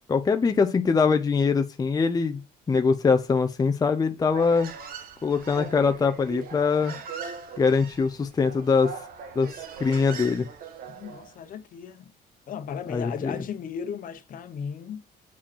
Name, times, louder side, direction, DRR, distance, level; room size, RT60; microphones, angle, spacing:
voice 1, 0.1-2.4 2.7-4.7 5.2-6.9 7.6-8.9 9.4-9.5 9.8-10.4 12.9-13.3, left 5 dB, 20° left, 0.6 m, -23 dB
Human voice, 4.3-11.4, right 6 dB, 60° right, 1.4 m, -40 dB
voice 2, 10.9-12.1 12.5-15.0, left 7 dB, 55° left, 1.0 m, -36 dB
7.0 x 5.0 x 4.4 m
cardioid pair, 110°, 17 cm